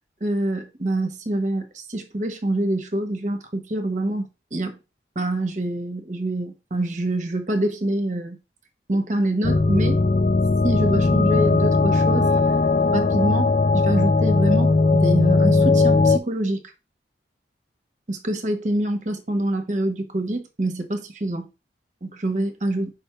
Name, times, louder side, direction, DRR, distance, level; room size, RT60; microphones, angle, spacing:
voice 1, 0.2-4.8 5.1-8.4 8.9-10.0 10.6-12.3 12.9-16.6 18.1-21.5 22.0-22.9, right 1 dB, 40° right, 1.1 m, -26 dB
sound 1, 9.4-16.2, left 3 dB, 35° left, 0.3 m, -18 dB
5.3 x 3.5 x 5.6 m
head